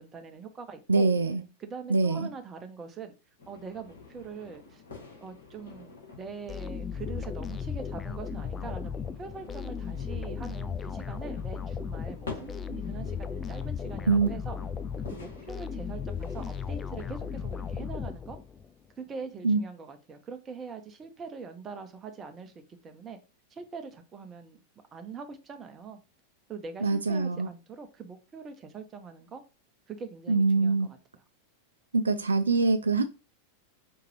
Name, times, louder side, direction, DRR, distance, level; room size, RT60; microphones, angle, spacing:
voice 1, 0.0-1.1 1.6-3.1 3.5-4.8 5.2-14.6 15.1-18.4 19.0-22.5 22.8-23.2 23.5-24.6 24.9-26.0 26.5-29.4 29.9-31.0, right 5 dB, 25° right, 0.9 m, -43 dB
voice 2, 0.9-1.4 1.9-2.3 14.1-14.3 19.4-19.6 26.8-27.5 30.3-30.9 31.9-33.0, right 3 dB, 75° right, 0.4 m, -24 dB
sound 1, 3.4-17.8, left 4 dB, 65° left, 2.2 m, -48 dB
sound 2, 6.5-18.7, left 6 dB, 20° left, 0.3 m, -36 dB
5.2 x 2.8 x 3.2 m
figure-of-eight pair, 90°, 0 cm